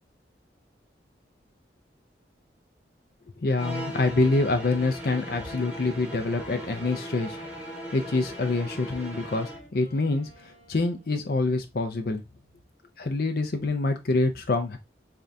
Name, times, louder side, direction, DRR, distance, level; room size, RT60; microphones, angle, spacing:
voice 1, 3.4-7.4 7.9-12.2 13.0-14.8, left 3 dB, 55° left, 0.5 m, -26 dB
sound 1, 3.5-9.7, equal, 10° right, 1.2 m, -38 dB
Wind instrument woodwind instrument, 4.8-11.5, right 1 dB, 30° left, 1.9 m, -52 dB
3.7 x 3.3 x 2.6 m
head